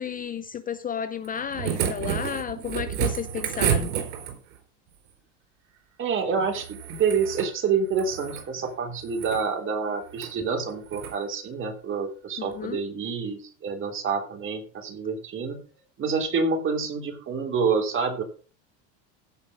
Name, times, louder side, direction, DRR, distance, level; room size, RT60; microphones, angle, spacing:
voice 1, 0.0-3.9 12.4-12.8, left 8 dB, 25° left, 0.6 m, -32 dB
sound 1, 1.2-4.6 6.5-7.5 7.9-8.5 9.0-9.4 10.1-10.3 10.9-11.2 12.5-12.6, right 9 dB, 85° right, 4.2 m, -30 dB
voice 2, 6.0-15.6 16.0-18.2, right 5 dB, 35° right, 3.5 m, -27 dB
16.0 x 5.4 x 5.4 m
supercardioid pair, 130°, 35 cm